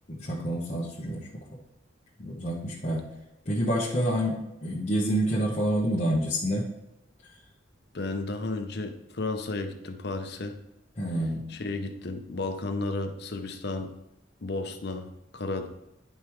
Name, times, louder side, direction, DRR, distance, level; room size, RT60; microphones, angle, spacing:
voice 1, 0.1-1.3 2.2-3.0 3.4-6.6 11.0-11.5, equal, 35° left, -7 dB, 1.2 m, -28 dB
voice 2, 7.9-10.6 11.5-13.9 14.4-15.7, left 2 dB, 60° left, 6 dB, 0.8 m, -33 dB
10.0 x 5.4 x 3.2 m, 0.87 s
head